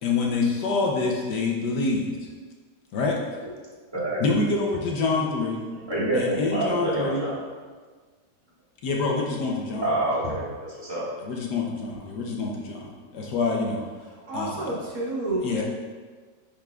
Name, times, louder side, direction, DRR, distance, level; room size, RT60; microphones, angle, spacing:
voice 1, 0.0-2.1 2.9-3.2 4.2-5.6 6.1-7.2 8.8-9.9 11.2-13.8 14.3-14.5 15.4-15.6, left 3 dB, 70° left, -1 dB, 1.4 m, -26 dB
voice 2, 3.9-4.2 5.8-7.4 9.8-11.0, right 1 dB, 15° right, -8 dB, 1.6 m, -27 dB
voice 3, 14.0-15.6, right 1 dB, 55° right, -6 dB, 2.0 m, -30 dB
10.0 x 4.6 x 2.3 m, 1.5 s
omnidirectional pair, 1.9 m